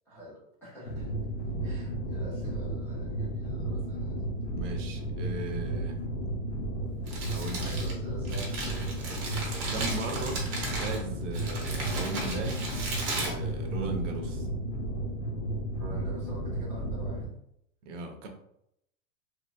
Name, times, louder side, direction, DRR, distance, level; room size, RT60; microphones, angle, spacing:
voice 1, 0.1-1.2 1.6-4.2 7.5-9.1 15.8-17.3, equal, 5° left, -11 dB, 0.4 m, -46 dB
sound 1, 0.9-17.3, right 1 dB, 65° left, 0.7 m, -33 dB
voice 2, 4.5-6.0 7.3-7.6 9.7-10.4 10.8-12.7 13.1-14.5 17.8-18.3, right 2 dB, 70° right, 4 dB, 0.7 m, -37 dB
Crumpling crinkling, 6.9-14.2, right 2 dB, 30° right, 0.7 m, -36 dB
3.0 x 2.6 x 2.2 m, 0.76 s
supercardioid pair, 160°, 38 cm